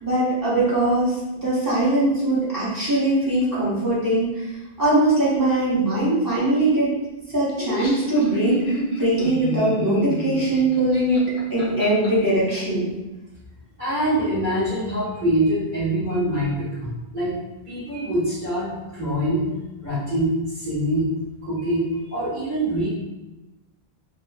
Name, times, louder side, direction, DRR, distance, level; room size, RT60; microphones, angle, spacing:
voice 1, 0.0-4.5 4.8-6.9 7.3-12.9, right 1 dB, 20° right, -9 dB, 0.8 m, -21 dB
Laughter, 7.5-12.1, left 1 dB, 70° left, 0.8 m, -28 dB
voice 2, 13.8-17.4 17.6-19.5 19.8-21.1 21.4-22.9, right 1 dB, 50° right, -15 dB, 1.3 m, -24 dB
2.9 x 2.0 x 2.3 m, 1.0 s
omnidirectional pair, 1.1 m